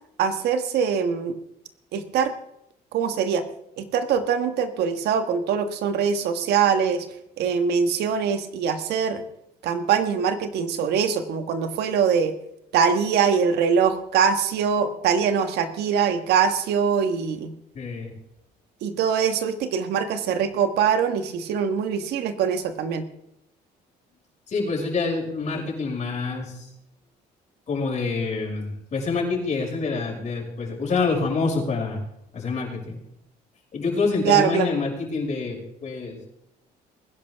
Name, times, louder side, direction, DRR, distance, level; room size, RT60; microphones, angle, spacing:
voice 1, 0.2-1.3 1.9-2.3 2.9-3.4 3.8-7.1 7.4-9.2 9.6-12.3 12.7-17.5 18.8-23.0 34.2-34.7, right 7 dB, 75° right, 8 dB, 1.5 m, -23 dB
voice 2, 17.7-18.1 24.5-26.7 27.7-32.0 32.3-33.0 33.7-36.2, left 4 dB, 45° left, -2 dB, 5.9 m, -26 dB
20.0 x 11.0 x 3.6 m, 0.79 s
cardioid pair, 110°, 17 cm